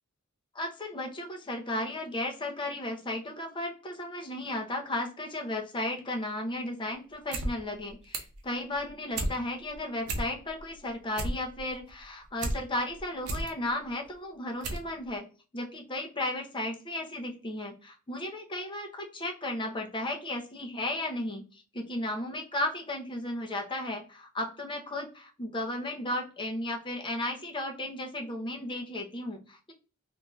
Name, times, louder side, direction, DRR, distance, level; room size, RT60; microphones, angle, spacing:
voice 1, 0.5-15.3 15.5-29.7, left 1 dB, 20° left, 2 dB, 0.6 m, -34 dB
sound 1, 7.1-7.5 7.8-8.4 8.8-9.3 9.7-9.8 10.0-10.6 10.9-12.6 13.0-13.5 14.1-14.2 14.6-14.9 15.2-15.3, right 2 dB, 75° right, 0.7 m, -33 dB
3.4 x 2.6 x 2.2 m, 0.35 s
head